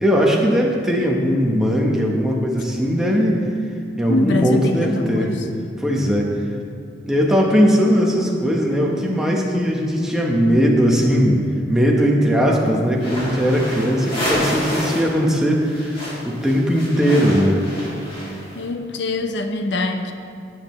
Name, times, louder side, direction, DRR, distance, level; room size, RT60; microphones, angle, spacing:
voice 1, 0.0-3.4 4.0-5.3 5.8-6.3 7.1-11.4 11.7-15.9 16.2-17.6, equal, 5° right, -2 dB, 1.0 m, -18 dB
voice 2, 4.1-5.4 18.5-20.1, left 2 dB, 75° left, 5 dB, 0.6 m, -23 dB
sound 1, 12.9-15.2 15.4-18.6, equal, 30° left, 2.3 m, -28 dB
12.5 x 8.9 x 3.2 m, 2.3 s
head